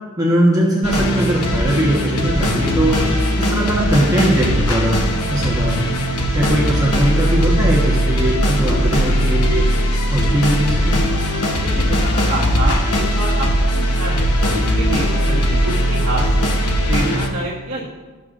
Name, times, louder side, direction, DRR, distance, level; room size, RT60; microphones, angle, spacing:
voice 1, 0.2-3.0 3.3-5.0 5.3-6.1 6.3-9.7 10.1-11.1, right 1 dB, 15° right, -4 dB, 1.2 m, -19 dB
sound 1, 0.8-17.3, equal, 90° left, 1.0 m, -19 dB
voice 2, 11.6-16.5 16.9-17.9, right 1 dB, 65° right, -9 dB, 1.4 m, -27 dB
12.5 x 6.7 x 2.5 m, 1.3 s
head